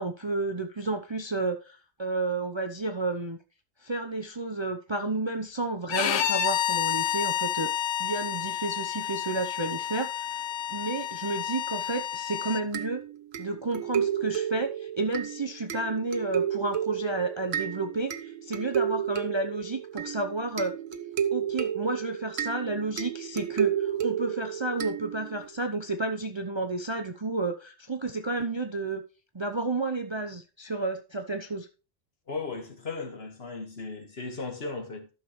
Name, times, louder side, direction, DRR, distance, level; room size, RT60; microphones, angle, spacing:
voice 1, 0.0-3.4 3.8-7.7 8.0-10.3 10.7-13.0 13.4-18.1 18.4-20.7 21.3-29.0 29.3-31.7, right 2 dB, 30° right, 0.6 m, -31 dB
Bowed string instrument, 5.9-12.6, left 11 dB, 75° left, 1.0 m, -30 dB
sound 1, 12.7-25.5, right 9 dB, 85° right, 1.3 m, -32 dB
voice 2, 32.3-35.1, left 3 dB, 55° left, 1.9 m, -36 dB
13.0 x 6.5 x 3.1 m
omnidirectional pair, 1.3 m